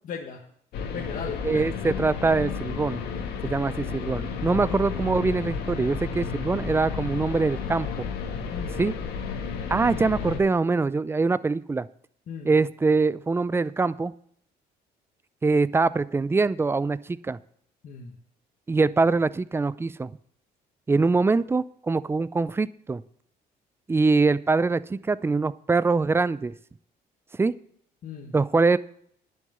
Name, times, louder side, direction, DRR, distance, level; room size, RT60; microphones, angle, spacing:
voice 1, 0.0-0.4 0.9-1.6 3.3-3.5 4.7-4.8 8.5-8.8 12.3-12.5 17.8-18.1 20.9-21.0 28.0-28.3, left 6 dB, 50° left, 0 dB, 1.5 m, -37 dB
sound 1, 0.7-10.4, left 6 dB, 75° left, 1.7 m, -32 dB
voice 2, 1.4-3.0 3.4-8.1 8.8-8.9 9.7-11.9 12.4-14.1 15.4-17.4 18.7-20.1 20.9-23.0 23.9-26.5 27.4-27.5 28.3-28.8, right 3 dB, 15° right, 17 dB, 0.4 m, -23 dB
10.5 x 6.3 x 8.0 m, 0.66 s
cardioid pair, 110°, 17 cm